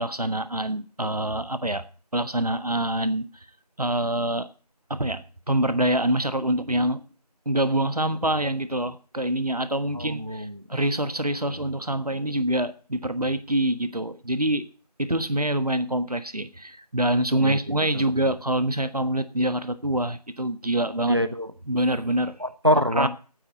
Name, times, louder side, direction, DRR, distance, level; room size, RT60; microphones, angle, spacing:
voice 1, 0.0-1.8 2.1-3.4 3.8-4.5 4.9-7.0 7.4-14.6 15.0-21.2 21.7-22.4 22.9-23.1, right 1 dB, 65° right, 11 dB, 1.3 m, -25 dB
voice 2, 10.0-10.5 17.4-17.5 21.1-21.5 22.4-23.1, equal, 35° right, 11 dB, 0.9 m, -24 dB
9.3 x 9.1 x 7.5 m, 0.38 s
figure-of-eight pair, 180°, 21 cm